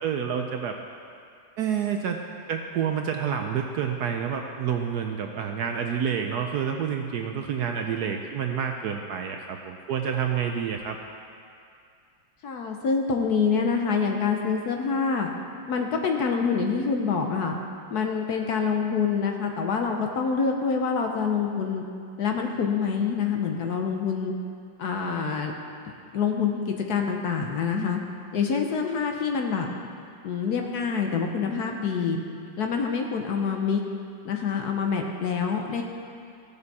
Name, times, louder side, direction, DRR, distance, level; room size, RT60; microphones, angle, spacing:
voice 1, 0.0-0.8 1.6-2.2 2.5-11.0, right 7 dB, 70° right, 3 dB, 1.0 m, -28 dB
voice 2, 12.4-15.3 15.7-17.6 17.9-21.8 22.2-24.3 24.8-25.5 26.1-28.0 28.3-29.7 30.2-32.2 32.6-33.8 34.2-35.8, left 5 dB, 65° left, 3 dB, 1.1 m, -26 dB
16.0 x 6.9 x 4.1 m, 2.4 s
omnidirectional pair, 2.1 m